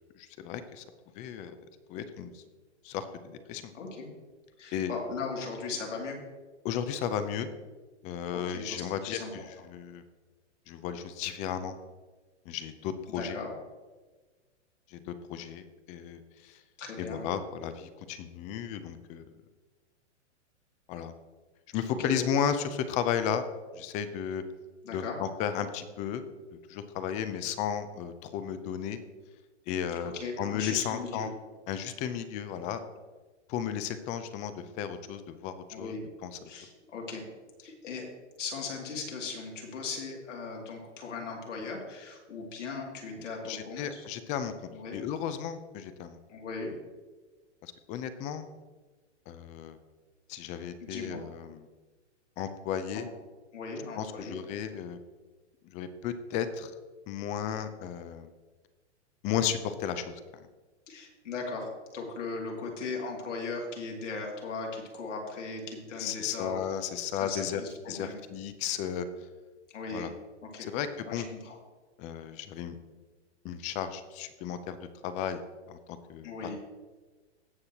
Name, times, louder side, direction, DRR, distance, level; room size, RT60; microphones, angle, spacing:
voice 1, 0.2-0.8 1.1-1.6 1.9-2.4 2.8-3.7 4.7-4.9 6.6-7.5 8.0-10.0 10.7-11.8 12.5-13.4 14.9-16.6 17.0-19.2 20.9-21.1 21.7-23.4 23.7-24.4 24.9-26.2 26.7-29.0 29.7-31.3 31.7-32.8 33.5-36.0 36.2-36.4 43.4-46.2 47.6-48.5 49.3-49.8 50.3-51.7 52.4-53.1 54.0-55.0 55.6-56.7 57.1-58.3 59.2-60.4 66.0-67.6 67.9-69.1 69.9-70.1 70.7-71.3 72.0-72.8 73.4-75.4 75.7-76.3, left 8 dB, 20° left, 11 dB, 0.5 m, -34 dB
voice 2, 3.7-4.1 4.6-6.2 8.3-9.3 13.1-13.5 16.8-17.2 22.0-22.3 24.8-25.2 30.0-31.3 35.7-36.0 36.5-37.2 37.6-38.1 38.4-44.0 44.7-44.9 46.3-46.7 50.8-51.2 52.9-53.0 53.5-54.4 60.9-66.6 67.1-68.2 69.7-70.1 70.4-70.7 71.1-71.6 76.2-76.6, left 4 dB, 85° left, 0 dB, 2.6 m, -38 dB
17.0 x 6.3 x 2.9 m, 1.3 s
hypercardioid pair, 145°, 36 cm